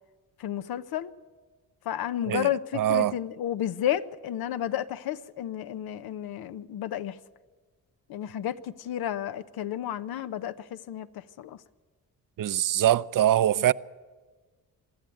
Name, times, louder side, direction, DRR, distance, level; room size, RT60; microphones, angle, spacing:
voice 1, 0.4-1.1 1.8-7.2 8.1-11.6 13.6-13.7, left 11 dB, 90° left, 0.8 m, -32 dB
voice 2, 2.3-3.2 12.4-13.7, right 12 dB, 65° right, 0.6 m, -23 dB
23.5 x 13.0 x 9.2 m
cardioid pair, 65°, 36 cm